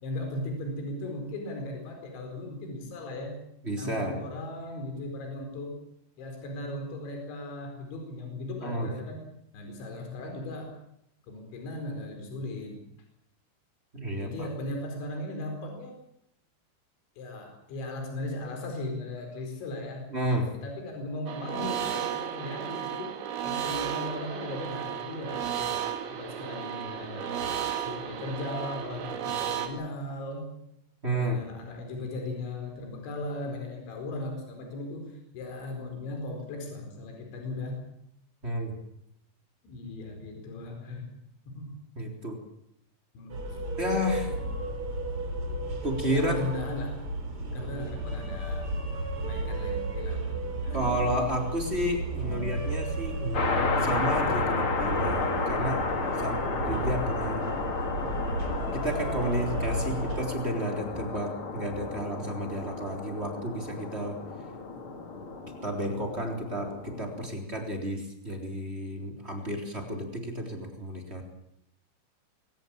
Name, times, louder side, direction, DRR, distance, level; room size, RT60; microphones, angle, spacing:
voice 1, 0.0-3.4 3.7-5.8 6.2-9.2 9.5-10.7 11.3-12.8 14.1-15.9 17.2-20.1 20.6-23.1 23.4-25.8 26.1-30.5 31.0-37.8 39.6-41.2 41.5-41.7 43.1-43.7 46.1-47.0 47.5-48.7 49.2-50.9 52.1-52.5 59.8-59.9, left 2 dB, 70° left, 3 dB, 6.8 m, -37 dB
voice 2, 3.6-4.1 8.6-8.9 13.9-14.5 20.1-20.5 31.0-31.4 38.4-38.7 41.9-42.4 43.8-44.3 45.8-46.3 50.7-55.8 56.2-57.5 58.7-64.2 65.6-71.2, equal, 15° right, 3 dB, 3.3 m, -31 dB
sound 1, 21.3-29.7, right 9 dB, 75° right, 4.7 m, -33 dB
sound 2, 43.3-60.3, right 1 dB, 30° right, 4.2 m, -33 dB
sound 3, 53.3-67.3, left 4 dB, 40° left, 2.2 m, -32 dB
22.5 x 18.5 x 8.8 m, 0.77 s
omnidirectional pair, 5.5 m